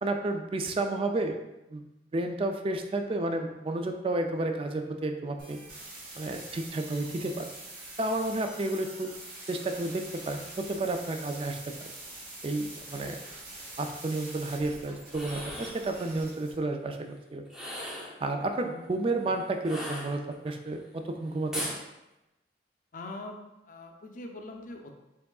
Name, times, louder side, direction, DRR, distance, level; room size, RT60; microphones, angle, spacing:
voice 1, 0.0-1.4 1.7-1.9 2.1-5.6 6.2-7.5 8.0-9.1 9.5-11.7 12.4-13.2 13.8-17.4 18.2-21.7, right 2 dB, 30° right, 5 dB, 0.3 m, -31 dB
sound 1, 5.4-16.5, right 2 dB, 50° right, 1.4 m, -45 dB
sound 2, 15.0-15.8 17.5-18.2 19.6-20.5 21.5-21.8, equal, 5° right, 0.7 m, -37 dB
voice 2, 22.9-25.0, left 2 dB, 45° left, 3 dB, 0.5 m, -43 dB
4.6 x 3.7 x 2.3 m, 0.96 s
head